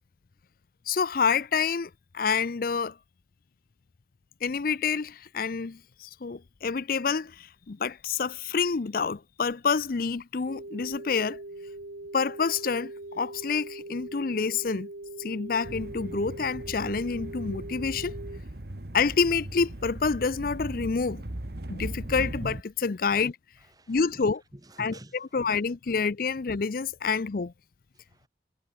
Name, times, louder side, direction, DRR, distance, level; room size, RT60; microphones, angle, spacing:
voice 1, 0.9-3.0 4.4-11.4 12.1-14.9 15.2-18.1 18.9-21.2 21.7-23.3 23.9-24.4 24.8-24.9 25.3-27.5, left 5 dB, 50° left, 0.5 m, -28 dB
sound 1, 10.5-18.4, right 2 dB, 75° right, 1.7 m, -41 dB
sound 2, 15.6-22.6, right 1 dB, 60° right, 1.8 m, -38 dB
voice 2, 23.6-24.3 24.5-25.7 26.4-26.5 27.9-28.3, right 1 dB, 20° right, 3.5 m, -50 dB
head